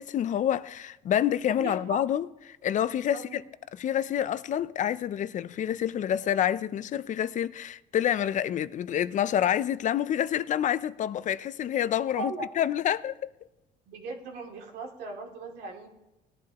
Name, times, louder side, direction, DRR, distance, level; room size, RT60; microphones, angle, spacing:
voice 1, 0.0-2.3 2.6-3.4 3.7-13.3, left 10 dB, 45° left, 0.5 m, -28 dB
voice 2, 1.6-2.0 3.1-3.4 12.2-12.5 13.9-15.9, right 3 dB, 80° right, 2.6 m, -38 dB
19.5 x 11.5 x 2.9 m
cardioid pair, 110°, 17 cm